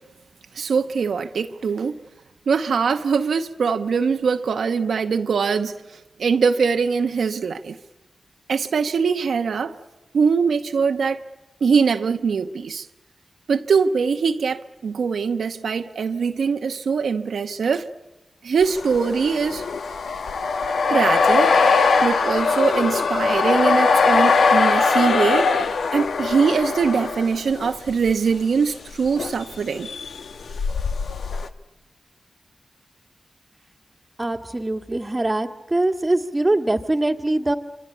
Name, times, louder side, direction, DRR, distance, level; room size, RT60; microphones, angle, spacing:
voice 1, 0.5-2.0 2.5-7.8 8.5-9.8 10.1-11.2 11.6-12.9 13.5-17.9 18.4-19.6 20.9-21.5 22.0-25.5 25.9-29.9, right 5 dB, 85° right, 1.0 m, -22 dB
sound 1, 18.6-28.1 29.1-29.6 29.8-31.5, left 4 dB, 80° left, 1.4 m, -21 dB
voice 2, 34.2-37.6, right 2 dB, 20° right, 1.8 m, -22 dB
26.5 x 26.0 x 8.5 m
wide cardioid pair, 85°, 0 cm